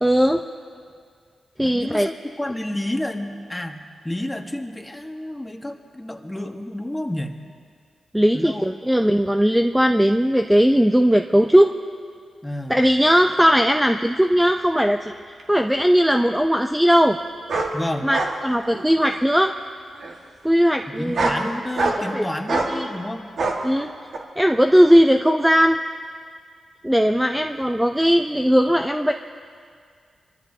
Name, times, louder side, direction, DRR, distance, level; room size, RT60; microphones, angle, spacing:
voice 1, 0.0-0.4 1.6-2.1 8.1-11.7 12.7-15.1 15.5-17.2 18.0-19.5 20.4-21.4 22.0-22.9 23.6-23.9 24.4-25.8 26.8-29.1, equal, 5° right, 5 dB, 0.5 m, -18 dB
voice 2, 1.6-7.3 8.3-8.7 12.4-12.8 17.7-18.1 21.0-23.3, left 1 dB, 15° left, 4 dB, 1.3 m, -30 dB
sound 1, 15.4-15.5 17.5-17.7 18.1-18.3 18.7-19.3 20.0-20.1 21.0-21.4 21.8-22.1 22.5-22.7 23.4-23.6 24.1-24.2, right 3 dB, 70° right, 1.6 m, -24 dB
24.0 x 13.0 x 2.8 m, 2.1 s
cardioid pair, 55°, 0 cm